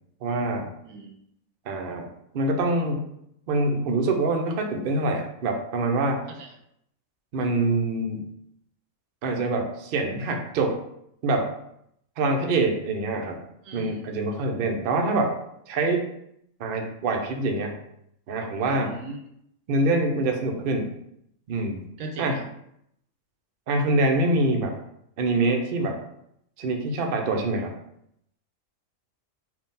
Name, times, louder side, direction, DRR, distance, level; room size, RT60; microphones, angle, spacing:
voice 1, 0.2-0.7 1.7-2.1 2.3-3.0 3.5-6.2 7.3-8.3 9.2-10.8 11.2-11.5 12.2-13.4 13.7-15.3 15.7-16.1 16.6-17.8 18.3-19.0 19.7-20.9 21.5-21.8 22.2-22.4 23.7-24.8 25.2-26.0 26.6-27.8, right 2 dB, 55° right, 3 dB, 0.6 m, -25 dB
voice 2, 0.8-1.2 6.3-6.6 13.6-14.1 18.7-19.3 22.0-22.5, right 2 dB, 80° right, 4 dB, 1.0 m, -39 dB
3.6 x 2.6 x 4.0 m, 0.75 s
omnidirectional pair, 1.4 m